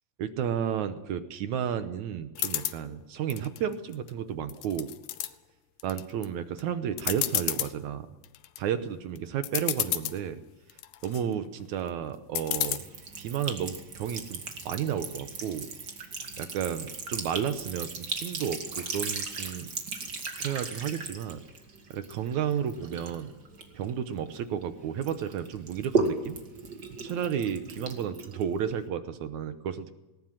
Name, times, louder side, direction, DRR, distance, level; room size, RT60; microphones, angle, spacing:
voice 1, 0.2-4.9 5.8-8.1 8.6-10.4 11.0-12.8 13.2-15.7 16.4-19.7 20.4-21.4 21.9-23.3 23.7-26.4 27.0-29.9, right 8 dB, 70° right, 10 dB, 1.9 m, -32 dB
sound 1, 2.4-2.8 3.3-4.1 4.5-5.3 5.8-6.3 6.6-6.7 7.0-7.7 8.2-8.6 9.2-9.3 9.4-10.2 10.7-11.2 12.4-12.8, left 14 dB, 80° left, 2.6 m, -30 dB
Sink (filling or washing) / Trickle dribble, 12.5-24.6 25.0-28.9, right 4 dB, 35° right, 2.0 m, -36 dB
19.5 x 19.0 x 7.7 m, 1.0 s
omnidirectional pair, 4.2 m